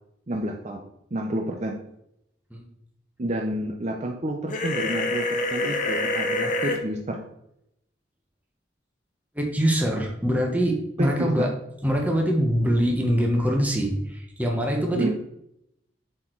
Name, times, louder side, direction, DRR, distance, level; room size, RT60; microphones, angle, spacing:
voice 1, 0.3-0.8 1.1-1.8 3.2-7.3 11.0-11.5 14.9-15.1, right 1 dB, 40° right, 3 dB, 0.6 m, -29 dB
sound 1, 4.5-6.8, left 2 dB, 45° left, 0.9 m, -26 dB
voice 2, 9.3-11.5 11.8-15.1, equal, 10° right, 1 dB, 1.1 m, -23 dB
7.2 x 4.4 x 4.6 m, 0.78 s
head